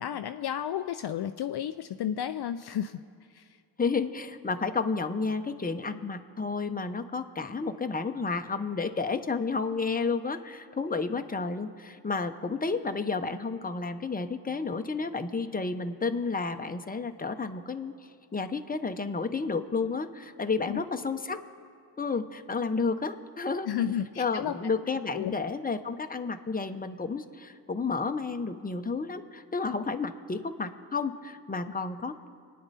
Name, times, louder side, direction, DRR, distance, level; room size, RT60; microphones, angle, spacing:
voice 1, 0.0-3.0 3.3-3.4 20.7-20.8 23.7-24.6 25.1-25.3, left 10 dB, 60° left, 9 dB, 0.5 m, -32 dB
voice 2, 3.8-17.9 18.3-21.4 22.0-23.7 24.2-32.3, left 4 dB, 20° left, 7 dB, 0.9 m, -31 dB
25.0 x 9.6 x 4.2 m, 2.2 s
cardioid pair, 55°, 45 cm